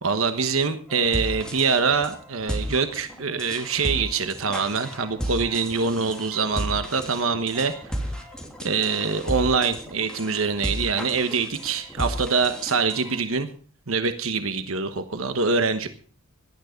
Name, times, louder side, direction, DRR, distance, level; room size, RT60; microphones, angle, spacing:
voice 1, 0.0-8.1 8.6-13.5 13.9-15.9, right 5 dB, 70° right, 9 dB, 1.2 m, -24 dB
sound 1, 0.9-13.2, equal, 5° left, 3.1 m, -33 dB
17.5 x 12.0 x 5.2 m, 0.43 s
head